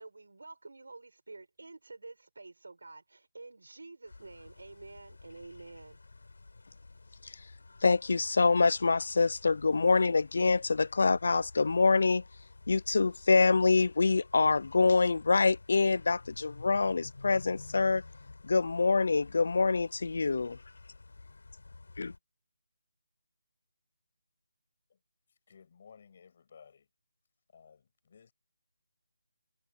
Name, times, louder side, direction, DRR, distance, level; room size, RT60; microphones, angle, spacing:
voice 1, 0.0-6.0, right 3 dB, 75° right, 7.1 m, -49 dB
sound 1, 4.1-22.2, left 3 dB, 70° left, 4.9 m, -52 dB
voice 2, 7.8-12.2 12.7-18.0 18.4-20.6 22.0-22.1, left 4 dB, 50° left, 0.5 m, -25 dB
voice 3, 25.3-26.9 27.5-28.3, left 6 dB, 30° left, 6.1 m, -57 dB
figure-of-eight pair, 175°, 0 cm